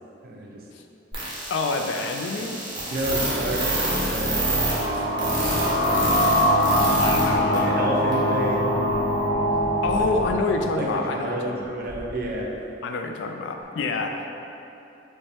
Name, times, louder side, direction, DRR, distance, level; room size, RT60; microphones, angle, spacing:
voice 1, 0.2-0.6 2.9-4.5 5.1-6.1 7.0-8.8 10.0-10.1 10.8-12.6 14.1-14.2, right 1 dB, 55° right, -1 dB, 0.5 m, -31 dB
sound 1, 1.1-7.3 7.5-7.6 8.1-8.2, right 2 dB, 25° right, 0.9 m, -26 dB
voice 2, 1.5-2.6 7.0-7.8 9.8-11.7 12.8-14.4, left 3 dB, 75° left, 4 dB, 0.3 m, -27 dB
sound 2, 4.2-11.6, equal, 60° left, 0.7 m, -23 dB
sound 3, 8.5-8.6 8.9-10.4 10.8-10.9 11.6-12.4 12.9-13.0 13.6-13.7, equal, 10° left, 0.7 m, -40 dB
5.2 x 2.2 x 3.4 m, 2.8 s
head